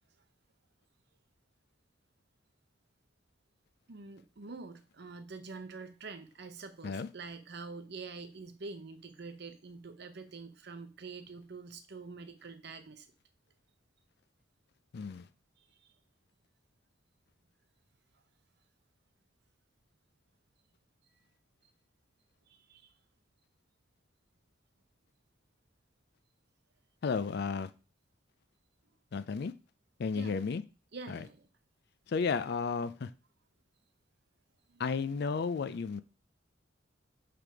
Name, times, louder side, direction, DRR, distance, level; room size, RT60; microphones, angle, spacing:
voice 1, 3.9-13.1 15.6-15.9 22.5-22.9 30.1-30.4 30.9-31.5 34.7-34.8, right 4 dB, 60° right, 0.7 m, -46 dB
voice 2, 14.9-15.3 27.0-27.7 29.1-29.5 30.0-30.6 31.1-31.2 32.1-33.1 34.8-36.0, left 5 dB, 55° left, 0.4 m, -33 dB
5.8 x 3.4 x 4.7 m
head